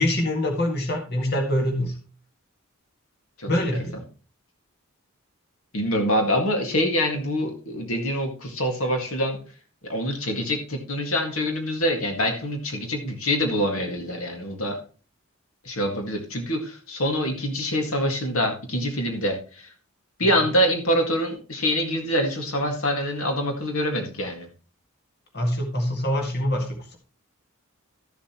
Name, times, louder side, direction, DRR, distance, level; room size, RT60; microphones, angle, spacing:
voice 1, 0.0-1.9 3.5-3.9 25.3-27.0, left 1 dB, 50° left, 2 dB, 1.9 m, -24 dB
voice 2, 3.4-3.8 5.7-9.4 9.8-14.8 15.6-19.7 20.2-24.5, equal, 75° left, 4 dB, 1.9 m, -25 dB
13.5 x 7.1 x 3.0 m, 0.37 s
head